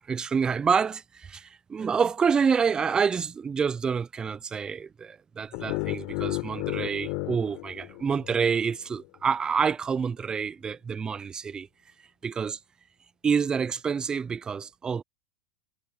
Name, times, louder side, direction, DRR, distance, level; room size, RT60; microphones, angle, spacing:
voice 1, 0.1-11.7 12.2-12.6 13.2-15.0, right 6 dB, 15° right, 0.5 m, -27 dB
sound 1, 5.5-8.6, left 29 dB, 55° left, 4.2 m, -33 dB
hypercardioid pair, 120°, 4 cm